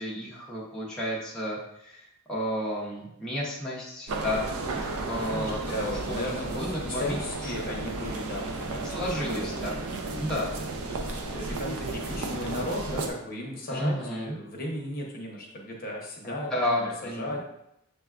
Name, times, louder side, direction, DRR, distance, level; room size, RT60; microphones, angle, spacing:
voice 1, 0.0-4.5 4.7-7.8 8.8-9.7 10.2-10.5 13.7-14.3 16.2-17.4, equal, 5° left, -7 dB, 0.6 m, -32 dB
sound 1, 4.1-13.1, right 2 dB, 70° right, 0.5 m, -33 dB
voice 2, 5.2-9.7 10.3-10.5 10.9-17.4, left 1 dB, 40° left, -2 dB, 0.7 m, -36 dB
6.5 x 2.2 x 2.3 m, 0.80 s
head